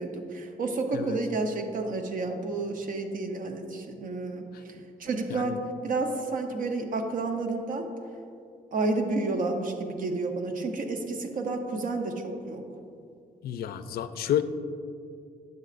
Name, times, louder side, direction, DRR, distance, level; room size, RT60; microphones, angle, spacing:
voice 1, 0.0-7.9 8.7-12.6, right 3 dB, 55° right, 5 dB, 0.8 m, -30 dB
voice 2, 13.4-14.4, left 10 dB, 75° left, 12 dB, 0.4 m, -30 dB
9.5 x 7.8 x 2.5 m, 2.5 s
cardioid pair, 125°, 16 cm